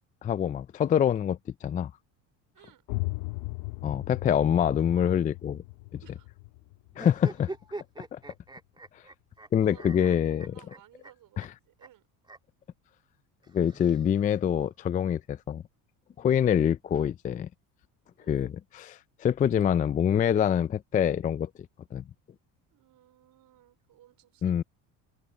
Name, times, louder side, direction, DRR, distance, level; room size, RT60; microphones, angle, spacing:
voice 1, 0.2-1.9 3.8-5.6 5.9-6.0 7.0-7.5 8.1-8.2 9.5-10.5 11.4-11.5 13.5-15.6 16.2-17.5 18.3-21.5 21.9-22.0 24.4-24.6, left 9 dB, 20° left, 0.3 m, -25 dB
sound 1, 2.9-8.5, left 24 dB, 75° left, 0.8 m, -38 dB
sound 2, 6.9-9.5 9.8-11.1 11.4-11.5 11.8-11.9 12.2-12.4 13.4-14.4, right 2 dB, 10° right, 2.3 m, -43 dB
voice 2, 9.6-12.0 18.2-18.4 22.7-24.6, right 13 dB, 55° right, 5.0 m, -57 dB
supercardioid pair, 100°, 39 cm